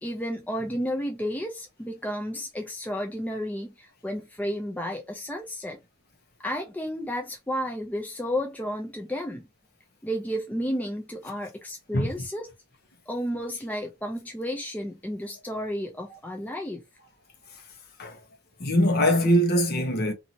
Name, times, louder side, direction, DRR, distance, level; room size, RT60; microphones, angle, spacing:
voice 1, 0.0-5.8 6.4-9.4 10.0-12.5 13.1-16.8, equal, 10° left, 0.4 m, -32 dB
voice 2, 18.6-20.1, equal, 45° left, 0.9 m, -22 dB
2.7 x 2.6 x 2.8 m
head